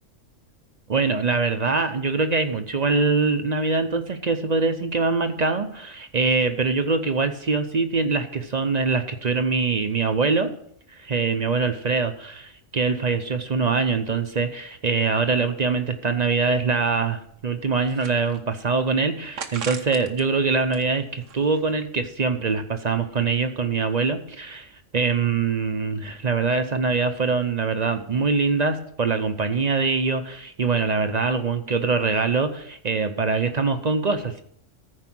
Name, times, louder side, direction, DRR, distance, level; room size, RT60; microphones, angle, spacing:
voice 1, 0.9-10.5 10.9-34.4, right 4 dB, 40° right, 8 dB, 0.7 m, -23 dB
sound 1, 17.3-18.7 19.4-20.2 20.6-21.8, right 7 dB, 85° right, 1.2 m, -38 dB
14.5 x 4.8 x 6.1 m, 0.68 s
omnidirectional pair, 1.2 m